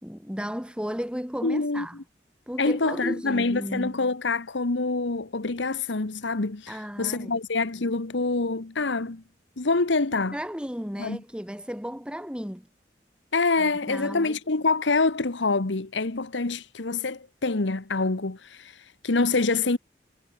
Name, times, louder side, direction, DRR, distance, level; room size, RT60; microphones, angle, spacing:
voice 1, 0.0-2.0 2.5-4.0 6.7-7.3 10.3-12.7 13.6-14.4, equal, 5° right, 5.6 m, -34 dB
voice 2, 1.4-1.9 2.6-9.2 9.6-10.4 11.0-11.2 13.3-19.8, left 3 dB, 85° left, 1.2 m, -26 dB
head